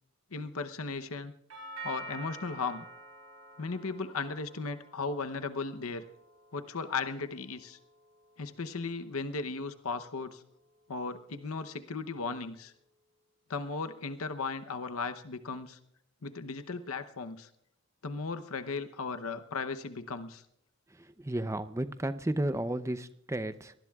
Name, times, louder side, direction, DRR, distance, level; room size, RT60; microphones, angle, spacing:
voice 1, 0.3-1.3 1.8-2.9 3.6-6.1 6.5-7.8 8.4-10.4 10.9-12.7 13.5-15.8 16.2-17.5 18.0-20.4, left 4 dB, 80° left, 9 dB, 0.8 m, -36 dB
Doorbell, 1.5-9.6, right 1 dB, 75° right, 4.1 m, -49 dB
voice 2, 20.9-23.7, right 1 dB, 15° right, 11 dB, 0.6 m, -33 dB
24.5 x 19.0 x 2.4 m, 0.75 s
head